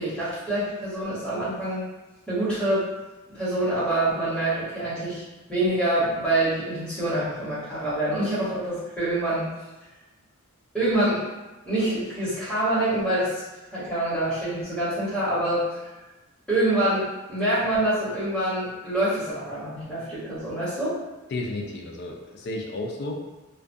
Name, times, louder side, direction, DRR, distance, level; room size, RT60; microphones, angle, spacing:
voice 1, 0.0-1.8 2.3-2.9 3.3-5.2 5.5-9.5 10.7-11.2 11.6-13.3 13.7-15.9 16.5-20.9, right 1 dB, 5° left, -12 dB, 1.1 m, -26 dB
voice 2, 21.3-23.1, left 2 dB, 50° left, 1 dB, 0.4 m, -32 dB
2.3 x 2.2 x 2.6 m, 1.1 s
head